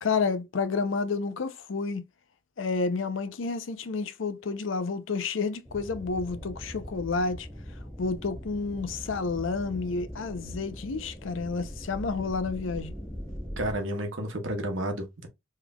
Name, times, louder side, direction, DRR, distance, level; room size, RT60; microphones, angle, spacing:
voice 1, 0.0-2.1 2.6-7.5 8.0-12.9, left 4 dB, 80° left, 0.6 m, -30 dB
sound 1, 5.7-13.8, equal, 5° left, 0.7 m, -41 dB
voice 2, 13.6-15.3, right 1 dB, 80° right, 1.1 m, -31 dB
3.7 x 3.2 x 2.3 m
head